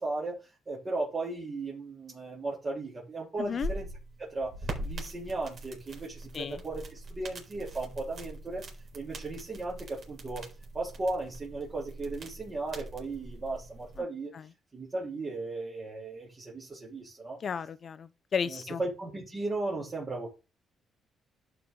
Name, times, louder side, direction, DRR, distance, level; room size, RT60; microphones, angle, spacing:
voice 1, 0.0-3.9 4.2-4.5 4.8-8.6 8.9-10.5 10.7-14.3 14.7-17.4 18.4-20.3, right 2 dB, 30° right, 3.5 m, -36 dB
voice 2, 3.4-3.7 6.3-6.6 17.4-18.8, left 6 dB, 50° left, 0.6 m, -33 dB
sound 1, 3.4-14.0, right 1 dB, 55° right, 4.3 m, -42 dB
11.5 x 4.5 x 3.8 m
cardioid pair, 90°, 0 cm